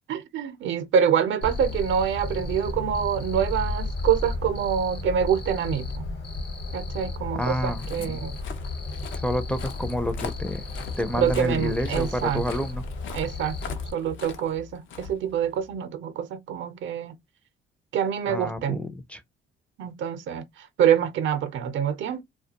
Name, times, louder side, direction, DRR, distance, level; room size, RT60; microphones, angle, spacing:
voice 1, 0.1-5.9 6.7-8.4 11.1-12.4 13.1-17.1 17.9-18.8 19.8-20.4 20.8-22.2, right 8 dB, 70° right, 0.6 m, -26 dB
Cricket, 1.4-13.9, left 2 dB, 55° left, 1.0 m, -33 dB
voice 2, 7.3-8.2 9.1-10.7 11.0-12.8 18.3-19.2, left 1 dB, 5° left, 0.4 m, -29 dB
Walk footsteps, 7.5-15.7, left 6 dB, 75° left, 0.6 m, -42 dB
2.3 x 2.2 x 2.8 m
cardioid pair, 90°, 20 cm